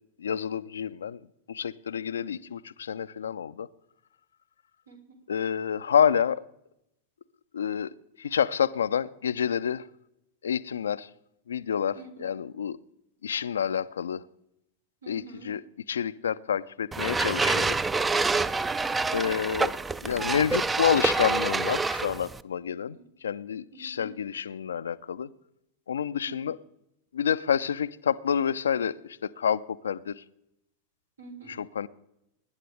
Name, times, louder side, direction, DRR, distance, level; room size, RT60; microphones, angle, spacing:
voice 1, 0.2-1.2 1.5-3.7 5.3-6.4 7.5-9.8 10.4-11.1 11.5-12.8 13.2-14.2 15.1-15.6 15.9-17.8 19.1-19.7 20.0-25.3 25.9-26.6 27.1-30.2 31.5-31.9, left 8 dB, 70° left, 0.4 m, -28 dB
voice 2, 2.1-2.5 4.9-5.2 11.9-12.3 15.0-15.5 18.7-19.1 22.9-23.0 23.7-24.2 26.2-26.5 31.2-31.6, right 3 dB, 75° right, 3.5 m, -47 dB
sound 1, 16.9-22.4, right 3 dB, 10° right, 0.5 m, -27 dB
24.5 x 11.0 x 3.3 m
figure-of-eight pair, 90°, 0 cm